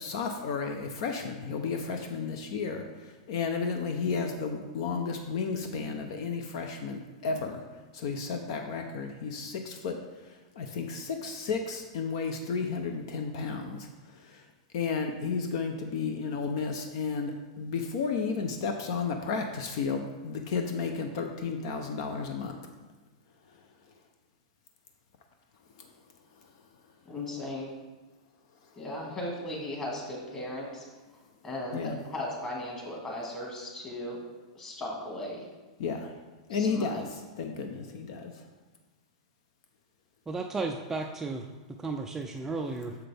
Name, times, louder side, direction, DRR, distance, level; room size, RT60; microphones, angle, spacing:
voice 1, 0.0-7.6 7.9-10.0 10.6-13.9 14.1-14.4 14.7-22.5 25.8-25.9 31.7-32.0 35.8-36.1 36.5-38.3, left 5 dB, 60° left, 5 dB, 0.6 m, -33 dB
voice 2, 27.1-27.7 28.7-30.8 31.4-34.2 34.6-35.4 36.5-37.0, left 1 dB, 20° left, -2 dB, 1.8 m, -37 dB
voice 3, 40.3-41.5 41.8-43.0, right 3 dB, 10° right, 3 dB, 0.3 m, -34 dB
6.8 x 5.8 x 3.4 m, 1.2 s
hypercardioid pair, 140°, 3 cm